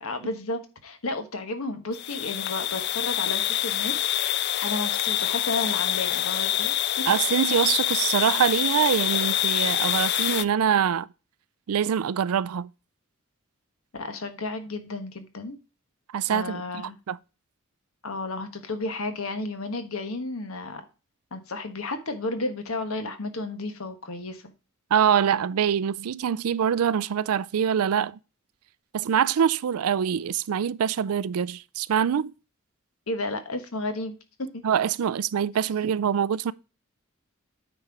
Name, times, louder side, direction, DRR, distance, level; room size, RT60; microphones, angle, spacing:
voice 1, 0.0-4.0 4.6-7.0 13.9-15.6 16.3-17.0 18.0-20.8 21.3-24.5 33.1-34.2 34.5-34.6, left 2 dB, 75° left, 1.3 m, -32 dB
sound 1, 1.9-10.4, left 12 dB, 50° left, 0.4 m, -26 dB
voice 2, 7.1-11.1 11.7-12.7 16.1-16.6 17.1-17.2 24.9-28.2 28.9-32.3 34.6-36.5, right 8 dB, 90° right, 0.4 m, -24 dB
9.1 x 4.3 x 4.8 m
head